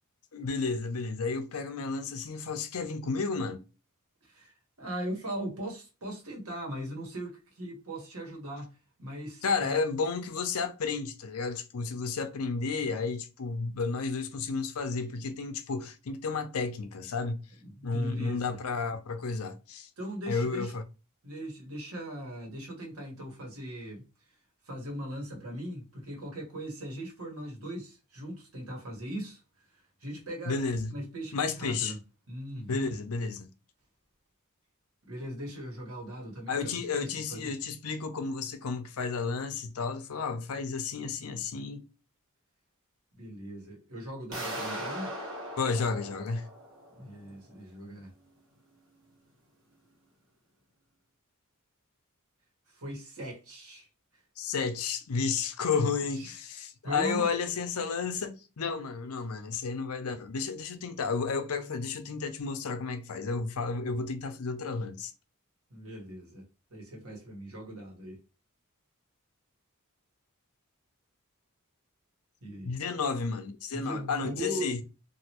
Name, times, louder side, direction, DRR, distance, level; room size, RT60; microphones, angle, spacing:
voice 1, 0.3-3.6 9.4-17.4 17.8-19.9 20.3-20.8 30.4-30.9 31.3-32.0 32.7-33.5 36.5-41.8 45.6-46.5 54.4-65.1 72.6-74.8, left 4 dB, 80° left, 0.6 m, -32 dB
voice 2, 4.2-9.8 17.6-18.6 20.0-20.8 21.2-24.0 24.6-29.4 29.7-30.6 30.9-32.0 32.3-32.9 35.1-37.5 43.1-45.2 47.0-48.1 52.7-53.9 54.1-54.2 56.1-56.4 56.8-57.3 65.7-68.2 72.4-72.7 73.7-74.7, right 1 dB, 80° right, 1.3 m, -39 dB
sound 1, 44.3-47.2, equal, 60° right, 1.1 m, -39 dB
3.0 x 2.6 x 2.9 m
head